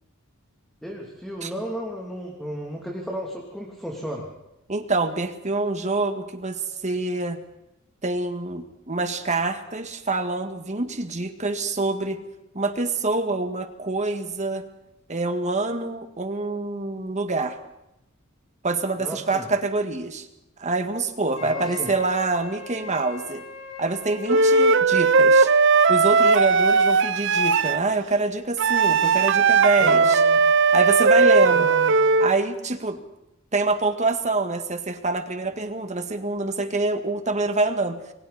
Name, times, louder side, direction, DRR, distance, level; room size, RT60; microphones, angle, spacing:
voice 1, 0.8-4.3 19.0-19.5 21.4-21.9 29.8-30.5 31.4-31.9, equal, ahead, -1 dB, 3.0 m, -34 dB
voice 2, 4.7-7.4 8.0-12.2 12.5-14.6 15.1-17.6 18.6-20.3 20.6-23.4 23.8-25.5 25.9-30.2 30.7-31.7 32.2-33.0 33.5-38.0, right 3 dB, 35° right, 7 dB, 1.9 m, -26 dB
Wind instrument woodwind instrument, 21.3-24.7, left 5 dB, 80° left, 3.3 m, -40 dB
Wind instrument woodwind instrument 2, 24.3-27.8 28.6-32.3, right 4 dB, 60° right, 0.7 m, -18 dB
29.0 x 22.5 x 4.3 m, 0.90 s
head